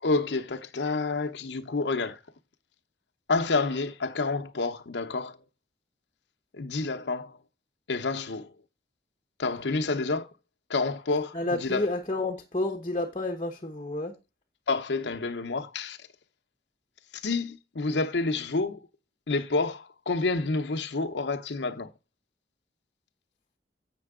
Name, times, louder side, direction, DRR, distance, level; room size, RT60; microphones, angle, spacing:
voice 1, 0.0-2.2 3.3-5.4 6.5-7.4 7.9-8.5 9.4-10.3 10.7-11.9 14.7-16.1 17.1-18.8 19.3-21.9, left 3 dB, 80° left, 0.8 m, -29 dB
voice 2, 11.3-14.1, left 2 dB, 30° left, 1.0 m, -30 dB
7.6 x 6.7 x 3.6 m
head